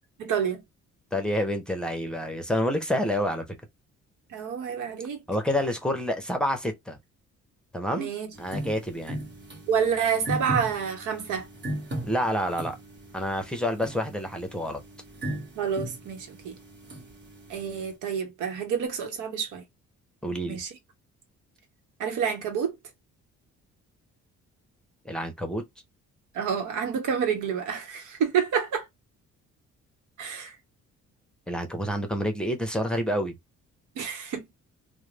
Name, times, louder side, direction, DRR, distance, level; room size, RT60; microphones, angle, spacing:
voice 1, 0.2-0.6 4.3-5.2 7.9-8.3 9.7-11.5 15.6-16.6 17.5-19.6 20.5-20.7 22.0-22.7 26.3-28.9 30.2-30.6 34.0-34.5, right 7 dB, 80° right, 1.0 m, -28 dB
voice 2, 1.1-3.6 5.3-7.0 7.7-8.1 8.4-9.2 12.0-12.8 13.1-14.8 20.2-20.6 25.0-25.6 31.5-33.4, equal, 5° left, 0.8 m, -28 dB
sound 1, 8.3-17.9, right 1 dB, 35° right, 1.3 m, -38 dB
2.4 x 2.2 x 3.2 m
cardioid pair, 90°, 30 cm